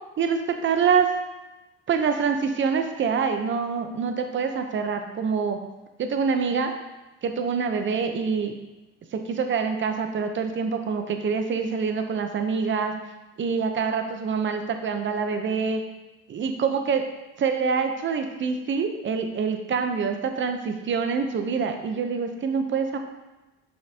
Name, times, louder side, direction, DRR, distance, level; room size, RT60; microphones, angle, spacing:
voice 1, 0.2-1.1 1.9-5.6 6.0-6.7 7.2-8.5 9.1-12.9 13.4-15.8 16.3-17.0 17.4-23.0, right 5 dB, 40° right, 6 dB, 0.8 m, -25 dB
6.4 x 5.7 x 2.9 m, 1.1 s
cardioid pair, 100°, 31 cm